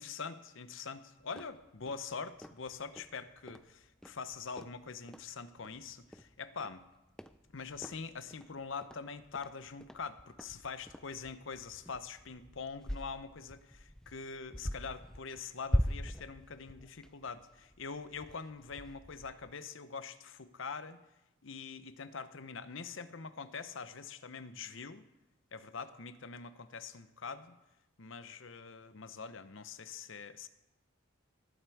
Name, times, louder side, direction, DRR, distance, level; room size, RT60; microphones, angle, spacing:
voice 1, 0.0-6.8 7.5-21.0 21.4-25.0 25.5-27.6 28.0-30.5, left 5 dB, 60° left, 12 dB, 0.7 m, -44 dB
sound 1, 1.2-19.5, equal, 5° left, 0.3 m, -42 dB
19.0 x 7.7 x 4.7 m, 0.95 s
head